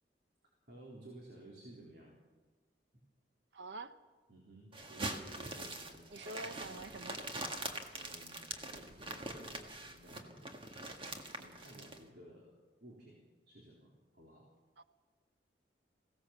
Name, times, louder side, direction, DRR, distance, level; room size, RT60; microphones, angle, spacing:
voice 1, 0.7-2.2 4.3-6.5 7.9-10.6 11.3-12.5 12.8-13.2 13.5-14.5, right 1 dB, 65° right, -3 dB, 3.9 m, -56 dB
voice 2, 3.5-4.0 5.6-5.7 6.1-7.2 14.8-14.9, right 2 dB, 80° right, 11 dB, 1.0 m, -46 dB
sound 1, 4.7-12.0, right 2 dB, 30° right, 1.7 m, -43 dB
22.0 x 16.5 x 7.2 m, 1.3 s
head